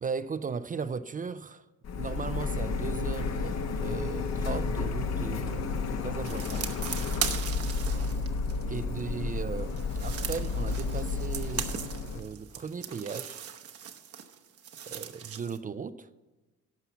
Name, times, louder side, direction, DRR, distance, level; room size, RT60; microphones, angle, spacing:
voice 1, 0.0-1.7 1.9-6.6 7.9-8.2 8.7-11.7 12.1-13.4 14.8-16.1, right 5 dB, 30° right, 13 dB, 0.4 m, -37 dB
Printer, 1.8-12.2, left 4 dB, 60° left, 1.0 m, -31 dB
sound 1, 6.2-9.0 9.6-15.6, right 8 dB, 50° right, 0.9 m, -38 dB
11.5 x 5.6 x 7.0 m, 1.2 s
cardioid pair, 90°, 30 cm